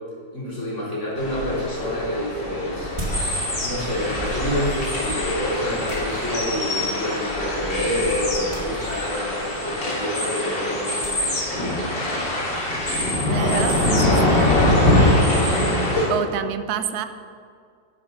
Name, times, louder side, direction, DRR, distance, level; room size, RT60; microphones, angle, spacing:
voice 1, 0.3-2.9 3.5-11.7, left 1 dB, 40° left, -6 dB, 4.0 m, -28 dB
sound 1, 1.2-16.0, left 1 dB, 85° left, 3.9 m, -23 dB
sound 2, 1.8-1.9 2.8-3.8 4.1-7.0 8.5-9.1 10.9-11.7 13.6-16.2, right 2 dB, 25° right, 2.6 m, -37 dB
voice 2, 13.3-14.5 15.0-17.1, right 9 dB, 70° right, 10 dB, 1.1 m, -29 dB
11.5 x 10.0 x 5.5 m, 2.2 s
omnidirectional pair, 1.9 m